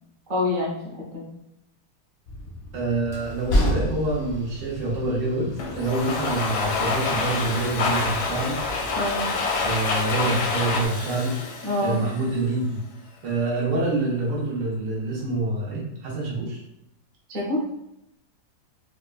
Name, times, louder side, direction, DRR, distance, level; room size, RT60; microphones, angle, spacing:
voice 1, 0.3-1.2 8.9-9.3 11.6-12.0 17.3-17.6, left 2 dB, 40° right, -4 dB, 0.8 m, -26 dB
Train, 2.3-10.9, equal, 45° left, 0.7 m, -32 dB
voice 2, 2.7-8.6 9.6-11.3 11.8-12.8 13.2-16.6, right 2 dB, 75° right, -3 dB, 1.5 m, -26 dB
Domestic sounds home sounds, 5.6-12.5, left 3 dB, 70° left, 1.0 m, -27 dB
4.1 x 2.3 x 2.3 m, 0.84 s
omnidirectional pair, 2.0 m